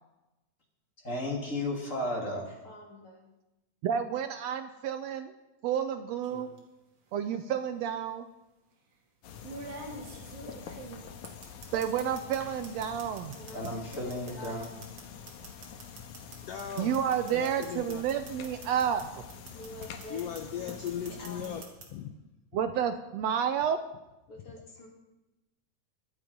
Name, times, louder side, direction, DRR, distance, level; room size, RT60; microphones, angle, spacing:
voice 1, 1.0-2.5 13.5-14.7, left 1 dB, 25° left, -1 dB, 3.1 m, -33 dB
voice 2, 2.7-3.2 13.4-13.8 14.1-14.7 19.5-20.3 21.2-21.4 24.3-24.9, left 1 dB, 45° left, -1 dB, 3.6 m, -46 dB
voice 3, 3.8-5.3 5.6-6.5 7.1-8.3 11.7-13.3 16.8-19.2 22.5-23.8, right 8 dB, 75° right, 9 dB, 1.7 m, -30 dB
sound 1, 6.2-6.6 7.8-7.9 9.4-12.4 12.6-19.0 19.3-20.4 20.7-21.9, right 3 dB, 55° right, 3.3 m, -45 dB
sound 2, 9.2-21.6, left 7 dB, 85° left, 2.6 m, -46 dB
voice 4, 16.4-16.9 17.3-18.0 19.7-19.8 20.1-22.1 24.5-24.6, left 8 dB, 65° left, 6 dB, 1.8 m, -38 dB
23.0 x 8.6 x 5.3 m, 0.99 s
omnidirectional pair, 3.4 m